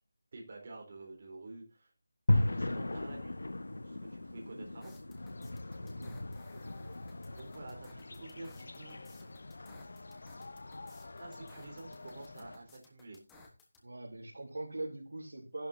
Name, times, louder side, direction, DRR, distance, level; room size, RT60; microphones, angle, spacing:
voice 1, 0.3-1.9 2.3-3.3 3.8-5.0 7.3-9.0 11.2-13.2, right 2 dB, 30° right, 0 dB, 4.0 m, -49 dB
sound 1, 2.3-12.5, left 1 dB, 85° left, 1.4 m, -37 dB
sound 2, 4.8-13.8, left 2 dB, 5° left, 1.2 m, -60 dB
sound 3, 5.2-12.6, left 3 dB, 50° left, 0.7 m, -50 dB
voice 2, 5.9-6.2 13.8-15.7, right 2 dB, 80° right, -1 dB, 3.3 m, -42 dB
14.0 x 11.5 x 2.7 m, 0.30 s
figure-of-eight pair, 180°, 0 cm